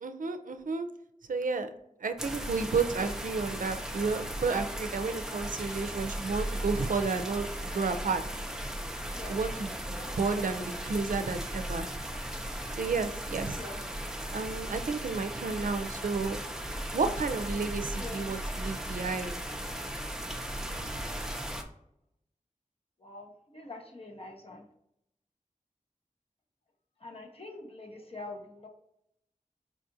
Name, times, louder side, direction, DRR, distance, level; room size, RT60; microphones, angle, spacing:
voice 1, 0.0-0.9 1.3-1.7 2.0-8.2 9.3-11.9 12.8-13.6 14.3-16.4 16.9-19.4, right 4 dB, 75° right, 9 dB, 0.4 m, -32 dB
sound 1, 2.2-21.6, right 1 dB, 5° right, 0.5 m, -37 dB
voice 2, 13.5-14.0 18.0-18.3 23.0-24.7 27.0-28.7, left 2 dB, 45° left, 1 dB, 0.8 m, -45 dB
4.8 x 2.4 x 2.6 m, 0.79 s
wide cardioid pair, 55°, 14 cm